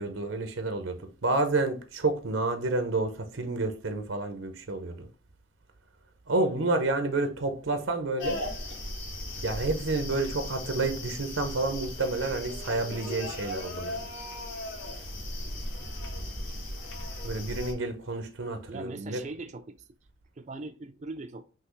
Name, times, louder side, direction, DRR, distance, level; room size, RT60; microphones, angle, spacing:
voice 1, 0.0-5.1 6.3-8.4 9.4-14.1 17.2-19.2, right 2 dB, 85° right, 0.8 m, -29 dB
sound 1, 8.2-17.7, left 1 dB, 75° left, 1.8 m, -37 dB
voice 2, 18.7-19.8 20.4-21.4, right 3 dB, 35° right, 0.4 m, -40 dB
5.8 x 2.9 x 3.1 m
head